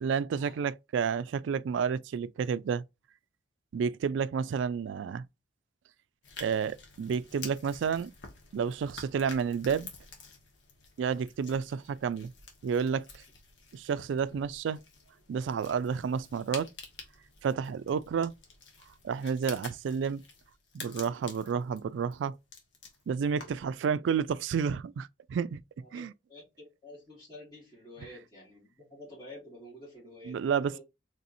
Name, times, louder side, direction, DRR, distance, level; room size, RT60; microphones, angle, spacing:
voice 1, 0.0-2.8 3.7-5.2 6.4-8.1 8.5-9.9 11.0-12.3 12.6-13.2 13.7-14.8 15.3-16.7 17.4-18.3 19.0-20.2 20.7-22.4 23.1-25.6 25.9-26.1 30.3-30.8, right 6 dB, 85° right, 0.3 m, -30 dB
sound 1, 6.2-23.7, left 4 dB, 75° left, 1.3 m, -49 dB
voice 2, 25.8-30.8, left 1 dB, 20° left, 2.4 m, -50 dB
4.0 x 3.3 x 2.6 m
head